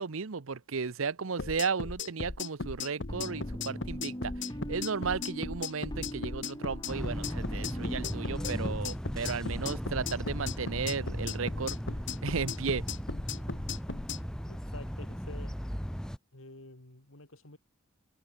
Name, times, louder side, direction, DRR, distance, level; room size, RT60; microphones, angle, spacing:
voice 1, 0.0-4.3 4.7-11.8 12.2-12.8, right 5 dB, 75° right, 0.8 m, -34 dB
sound 1, 1.4-14.2, left 4 dB, 55° left, 1.4 m, -37 dB
sound 2, 3.1-8.7, equal, 20° left, 2.7 m, -40 dB
sound 3, 6.9-16.2, equal, 5° left, 2.1 m, -37 dB
voice 2, 14.5-15.6 16.3-17.6, left 2 dB, 75° left, 3.7 m, -49 dB
head